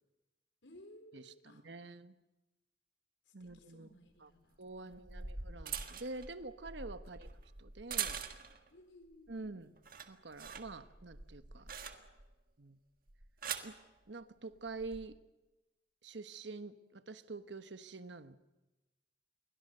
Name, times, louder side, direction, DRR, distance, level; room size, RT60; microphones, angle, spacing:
voice 1, 0.6-1.6 3.4-4.6 4.8-5.3 8.7-9.6, left 1 dB, 75° left, 7 dB, 4.0 m, -59 dB
voice 2, 1.1-2.1 3.3-3.9 4.2-4.3 4.6-7.3 7.6-8.2 9.3-9.7 10.1-11.7 12.6-12.8 13.6-13.8 14.1-15.2 16.0-18.4, right 3 dB, 70° right, 11 dB, 1.2 m, -47 dB
sound 1, 3.5-3.6 4.7-8.7 9.1-9.5 9.8-12.3 13.1-13.8 14.7-15.0, right 7 dB, 50° right, 1.7 m, -43 dB
28.5 x 23.0 x 6.7 m, 1.1 s
head